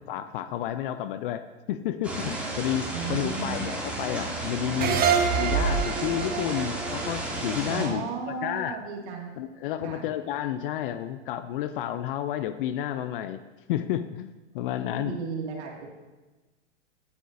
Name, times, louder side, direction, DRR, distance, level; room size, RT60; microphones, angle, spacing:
voice 1, 0.1-5.0 5.4-8.8 9.4-13.4 13.7-15.2, left 11 dB, 50° left, 11 dB, 0.5 m, -31 dB
sound 1, 2.0-7.9, right 2 dB, 5° right, 2.4 m, -33 dB
voice 2, 2.9-3.6 4.7-4.9 7.7-9.3 9.8-10.0 14.8-15.9, right 4 dB, 65° right, -1 dB, 2.2 m, -35 dB
sound 2, 4.8-8.1, right 6 dB, 25° right, 1.1 m, -26 dB
15.5 x 9.4 x 2.6 m, 1.2 s
hypercardioid pair, 110°, 36 cm